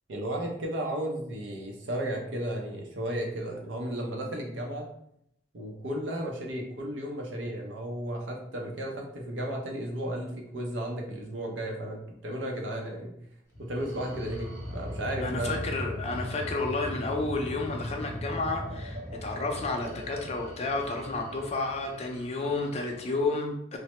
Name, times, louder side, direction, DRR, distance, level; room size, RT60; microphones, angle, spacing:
voice 1, 0.1-4.9 5.5-13.1 13.6-15.7, right 1 dB, 75° right, 1 dB, 0.6 m, -34 dB
sound 1, 13.5-23.3, left 1 dB, 15° right, 0.8 m, -39 dB
voice 2, 15.2-23.8, left 3 dB, 35° left, 2 dB, 0.5 m, -31 dB
3.1 x 2.1 x 2.9 m, 0.73 s
head